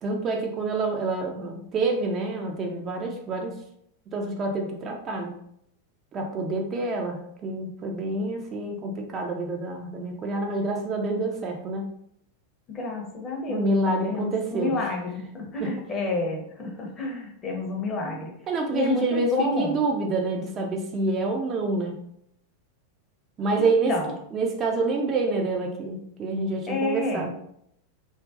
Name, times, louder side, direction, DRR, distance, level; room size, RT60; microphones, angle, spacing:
voice 1, 0.0-3.6 4.1-5.3 6.1-11.9 13.5-14.8 15.6-15.7 18.5-22.0 23.4-23.9 24.3-27.3, right 3 dB, 30° right, 2 dB, 0.3 m, -27 dB
voice 2, 12.7-18.3 18.7-19.8 23.6-24.1 26.7-27.3, left 3 dB, 25° left, 0 dB, 0.6 m, -29 dB
2.4 x 2.1 x 2.3 m, 0.72 s
figure-of-eight pair, 90°, 0 cm